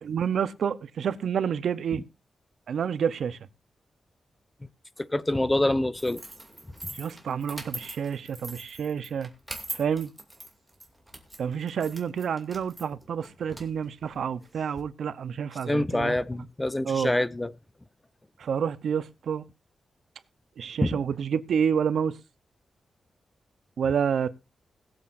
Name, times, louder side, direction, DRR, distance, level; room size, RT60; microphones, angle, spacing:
voice 1, 0.0-2.0 2.7-3.4 6.9-9.3 9.7-10.1 11.4-16.2 16.8-17.1 18.4-19.4 20.6-22.2 23.8-24.3, right 7 dB, 80° right, 0.7 m, -29 dB
voice 2, 5.0-6.2 15.7-17.5 20.8-21.0, left 1 dB, 15° left, 0.6 m, -26 dB
sound 1, 5.9-14.8, right 1 dB, 10° right, 2.5 m, -43 dB
20.5 x 7.7 x 2.6 m
cardioid pair, 95°, 0 cm